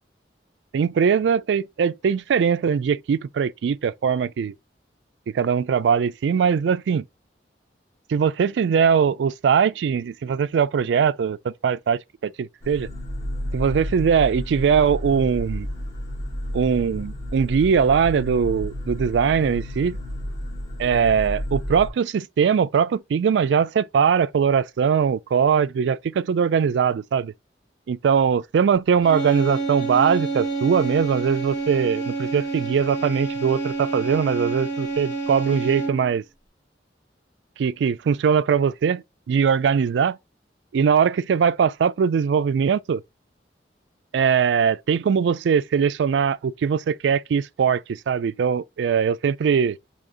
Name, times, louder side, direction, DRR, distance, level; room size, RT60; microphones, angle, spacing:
voice 1, 0.7-4.5 5.3-7.0 8.1-12.9 13.5-15.7 16.5-20.0 20.8-27.3 27.9-36.2 37.6-40.2 40.7-43.0 44.1-49.8, right 6 dB, 80° right, 0.3 m, -21 dB
sound 1, 12.6-21.9, left 1 dB, 25° left, 1.9 m, -31 dB
sound 2, 29.0-36.2, right 3 dB, 45° left, 1.7 m, -28 dB
4.8 x 2.9 x 2.5 m
head